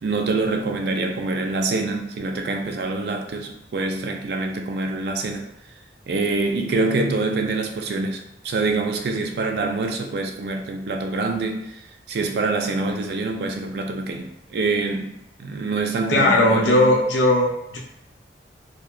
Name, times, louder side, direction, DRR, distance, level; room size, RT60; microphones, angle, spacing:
voice 1, 0.0-5.5 6.1-11.7 12.1-15.1 15.4-17.0, right 3 dB, 60° right, 3 dB, 0.3 m, -25 dB
voice 2, 16.1-17.8, left 1 dB, 80° left, -1 dB, 0.5 m, -18 dB
2.7 x 2.2 x 2.3 m, 0.83 s
head